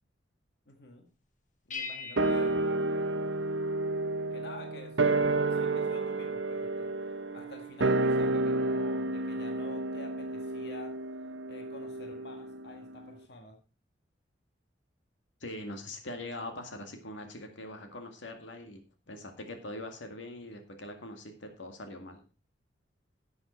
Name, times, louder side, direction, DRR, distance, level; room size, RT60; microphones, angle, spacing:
voice 1, 0.7-1.0 1.7-2.7 4.3-5.2 5.5-6.9 7.3-10.9 11.5-13.6, left 2 dB, 60° left, 4 dB, 1.8 m, -49 dB
sound 1, 1.7-3.9, left 5 dB, 40° left, 1.5 m, -43 dB
sound 2, 2.2-12.8 13.0-13.1, right 2 dB, 85° right, 1.0 m, -30 dB
voice 2, 15.4-18.8 19.1-22.2, left 1 dB, 85° left, 5 dB, 2.1 m, -42 dB
11.5 x 7.9 x 4.4 m, 0.33 s
head